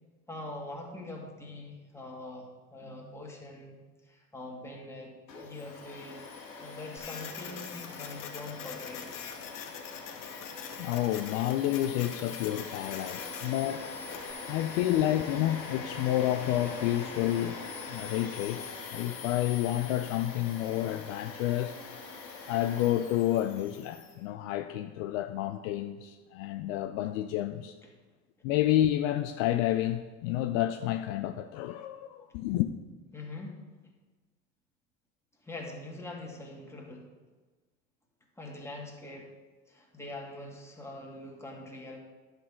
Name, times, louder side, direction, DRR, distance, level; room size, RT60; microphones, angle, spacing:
voice 1, 0.3-3.8 4.0-6.2 6.6-9.0 27.8-27.9 33.1-33.6 35.4-37.1 38.4-39.3 39.7-42.0, left 2 dB, 5° left, 1.9 m, -43 dB
Domestic sounds home sounds, 5.3-24.1, left 4 dB, 90° left, 1.4 m, -43 dB
Printer, 7.0-14.3, left 7 dB, 40° left, 1.2 m, -44 dB
voice 2, 10.8-13.9 14.5-17.6 17.9-18.6 18.9-21.8 22.5-27.8 28.4-32.7, left 13 dB, 55° left, 0.6 m, -29 dB
10.5 x 6.4 x 3.7 m
hypercardioid pair, 80°, 49 cm